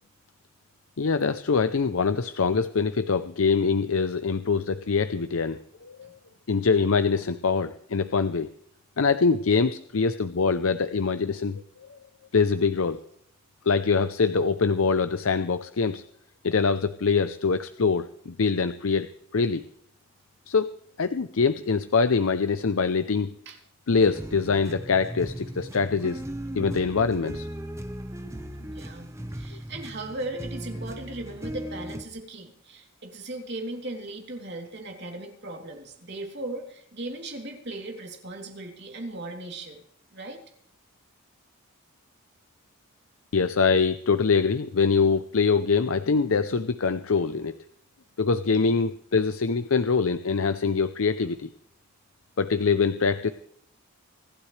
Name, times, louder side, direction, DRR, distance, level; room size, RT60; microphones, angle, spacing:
voice 1, 1.0-6.1 6.5-8.5 9.0-11.6 12.3-13.0 13.7-16.0 16.4-19.1 19.3-19.6 20.5-20.7 21.0-23.3 23.9-26.2 26.5-27.5 29.5-29.6 43.3-47.5 48.2-51.5 52.4-53.3, left 5 dB, 70° left, 11 dB, 0.6 m, -24 dB
sound 1, 23.9-32.0, right 1 dB, 15° right, 0.8 m, -37 dB
voice 2, 28.6-39.8 40.1-40.4 48.5-48.6, right 2 dB, 50° right, 2 dB, 3.2 m, -38 dB
25.5 x 12.0 x 3.3 m, 0.66 s
head